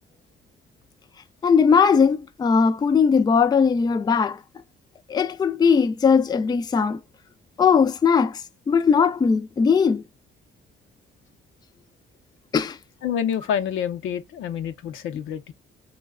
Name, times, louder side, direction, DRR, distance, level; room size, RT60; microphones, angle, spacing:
voice 1, 1.4-4.4 5.1-7.0 7.6-10.0 12.5-12.8, left 6 dB, 20° left, 0.3 m, -19 dB
voice 2, 13.0-15.5, left 8 dB, 80° left, 0.6 m, -27 dB
3.1 x 2.1 x 3.5 m
cardioid pair, 90°, 20 cm